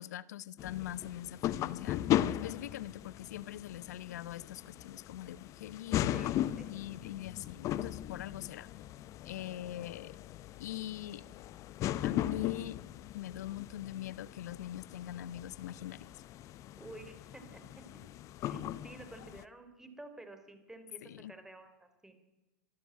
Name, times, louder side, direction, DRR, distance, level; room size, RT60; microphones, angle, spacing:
voice 1, 0.0-2.0 2.3-6.3 6.7-8.7 9.2-10.2 10.6-11.3 12.0-12.8 13.1-16.1 21.0-21.3, left 13 dB, 75° left, 19 dB, 1.1 m, -42 dB
sound 1, 0.6-19.4, left 13 dB, 35° left, 0.8 m, -38 dB
voice 2, 6.1-6.7 16.8-17.6 18.4-22.1, right 2 dB, 5° right, 7 dB, 3.4 m, -51 dB
25.0 x 12.5 x 9.7 m, 1.1 s
hypercardioid pair, 125°, 9 cm